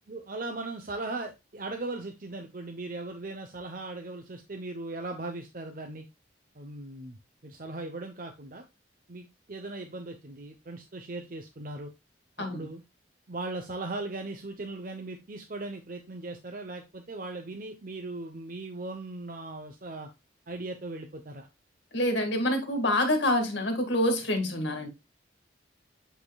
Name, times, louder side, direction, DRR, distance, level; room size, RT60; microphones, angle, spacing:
voice 1, 0.1-6.1 6.5-7.2 7.4-8.6 9.1-11.9 12.4-12.8 13.3-20.1 20.5-21.5, right 2 dB, 45° right, 0.8 m, -38 dB
voice 2, 21.9-24.9, left 1 dB, 70° left, 1.9 m, -26 dB
8.3 x 5.6 x 2.3 m
head